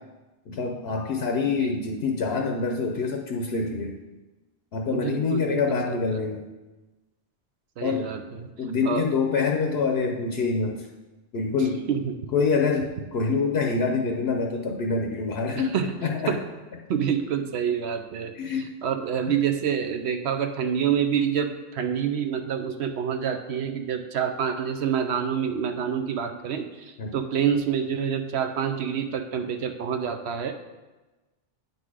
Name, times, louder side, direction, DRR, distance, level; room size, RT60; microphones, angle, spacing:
voice 1, 0.5-4.0 4.7-6.4 7.8-8.1 8.6-10.9 11.3-11.8 12.3-15.7 16.0-16.3 18.4-18.7 19.3-19.4 27.0-27.1, left 4 dB, 70° left, 2 dB, 0.9 m, -26 dB
voice 2, 1.6-2.1 4.9-6.1 7.8-8.5 8.8-9.1 11.9-12.2 15.5-15.9 16.3-16.4 16.9-30.5, right 8 dB, 70° right, 7 dB, 0.9 m, -27 dB
9.1 x 4.0 x 4.8 m, 1.1 s
omnidirectional pair, 1.2 m